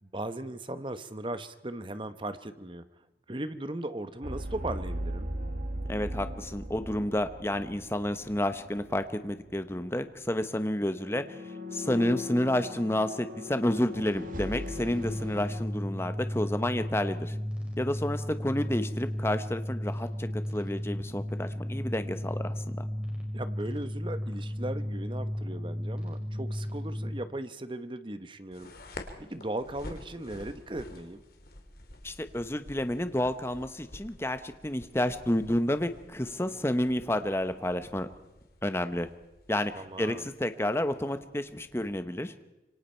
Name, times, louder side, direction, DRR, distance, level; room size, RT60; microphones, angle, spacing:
voice 1, 0.0-2.9 3.3-5.4 18.6-18.7 23.3-28.7 29.2-31.2 39.7-40.3, right 1 dB, 30° right, 11 dB, 1.1 m, -37 dB
sound 1, 4.2-9.1 9.3-9.6 11.0-15.6, left 1 dB, 50° right, 1.9 m, -38 dB
voice 2, 5.9-17.4 17.8-22.9 32.0-38.1 38.6-39.1 39.5-42.3, left 1 dB, 15° left, 9 dB, 1.1 m, -30 dB
sound 2, 14.9-27.1, equal, 5° right, 5.2 m, -34 dB
Parachute Opening, 28.5-42.0, left 1 dB, 55° left, 2.8 m, -50 dB
27.0 x 24.5 x 4.5 m, 1.0 s
head